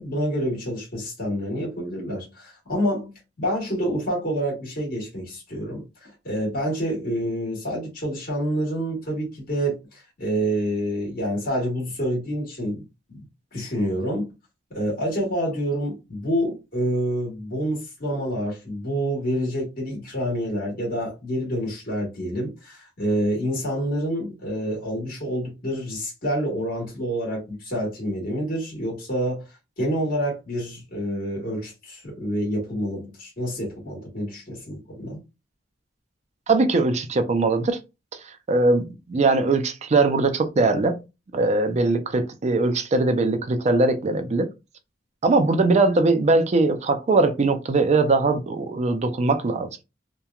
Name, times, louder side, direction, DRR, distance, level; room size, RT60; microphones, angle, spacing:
voice 1, 0.0-3.1 3.4-13.2 13.5-14.3 14.7-35.2, equal, 50° left, 1.3 m, -27 dB
voice 2, 36.5-37.8 38.5-38.8 39.1-41.0 41.3-44.5 45.2-49.7, right 3 dB, 40° right, 0.4 m, -21 dB
2.8 x 2.2 x 2.3 m
head